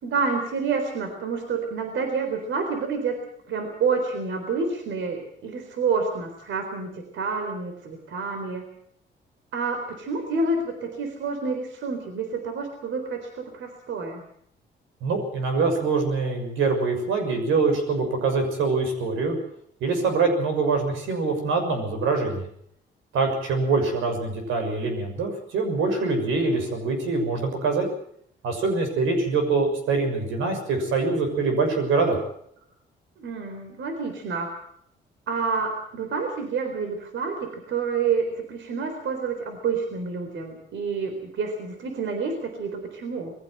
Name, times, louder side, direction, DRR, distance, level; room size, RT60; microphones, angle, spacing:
voice 1, 0.0-3.2 3.5-8.7 9.5-14.2 33.2-34.5 35.3-43.3, right 4 dB, 70° right, 5 dB, 4.1 m, -28 dB
voice 2, 15.0-19.4 19.8-22.5 23.1-27.9 28.4-32.2, right 4 dB, 85° right, 5 dB, 6.5 m, -24 dB
21.5 x 15.5 x 7.9 m, 0.67 s
cardioid pair, 90°, 20 cm